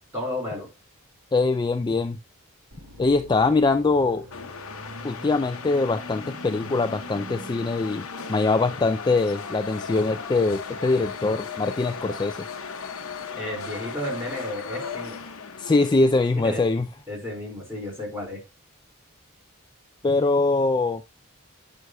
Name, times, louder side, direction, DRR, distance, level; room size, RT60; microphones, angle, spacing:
voice 1, 0.1-0.7 13.3-15.2 16.4-16.7 17.1-18.4, left 1 dB, 10° right, 4.8 m, -32 dB
voice 2, 1.3-2.2 3.0-4.3 5.0-12.5 15.6-16.9 20.0-21.0, left 3 dB, 20° left, 0.3 m, -23 dB
sound 1, 2.7-7.7, right 2 dB, 85° right, 1.9 m, -45 dB
sound 2, 4.3-16.6, left 5 dB, 70° left, 0.9 m, -37 dB
9.5 x 6.2 x 2.3 m
head